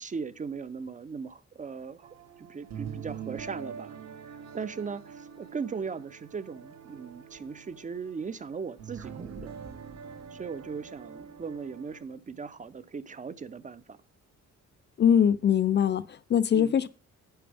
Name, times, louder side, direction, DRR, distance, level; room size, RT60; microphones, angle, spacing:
voice 1, 0.0-2.1 2.4-4.0 4.2-9.5 10.3-14.0 16.5-16.8, right 5 dB, 25° right, 0.5 m, -38 dB
sound 1, 2.0-12.0, right 7 dB, 65° right, 1.6 m, -44 dB
sound 2, 9.0-13.6 13.9-14.0, right 4 dB, 50° right, 1.9 m, -51 dB
voice 2, 15.0-16.9, left 8 dB, 40° left, 0.5 m, -22 dB
10.0 x 8.5 x 3.4 m
cardioid pair, 145°, 29 cm